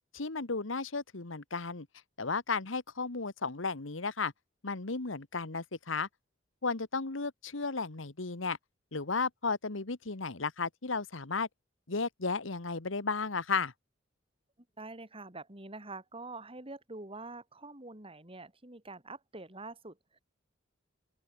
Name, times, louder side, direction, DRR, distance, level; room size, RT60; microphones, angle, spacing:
voice 1, 0.1-1.9 2.2-4.3 4.6-6.1 6.6-8.6 8.9-11.5 11.9-13.7, left 4 dB, 85° left, 1.5 m, -34 dB
voice 2, 14.8-20.2, right 2 dB, 30° right, 3.9 m, -46 dB
open air
head